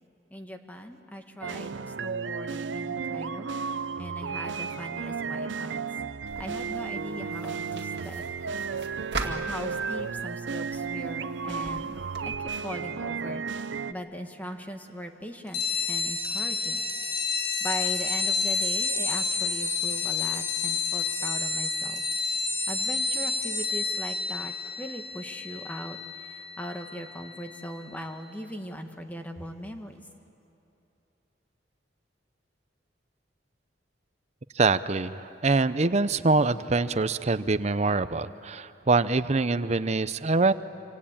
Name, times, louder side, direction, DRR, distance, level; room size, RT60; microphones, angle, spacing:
voice 1, 0.3-3.5 4.0-5.8 6.4-8.2 8.7-8.8 9.2-12.0 12.2-13.4 13.9-16.8 17.6-22.0 22.7-30.0, equal, 10° left, 5 dB, 1.5 m, -40 dB
sound 1, 1.4-13.9, right 5 dB, 80° right, 0.6 m, -33 dB
sound 2, 6.3-12.3, right 3 dB, 65° right, 2.1 m, -41 dB
sound 3, 15.5-27.6, left 4 dB, 75° left, 4.1 m, -29 dB
voice 2, 34.6-40.5, right 3 dB, 35° right, 14 dB, 0.7 m, -24 dB
26.0 x 26.0 x 8.9 m, 2.9 s
head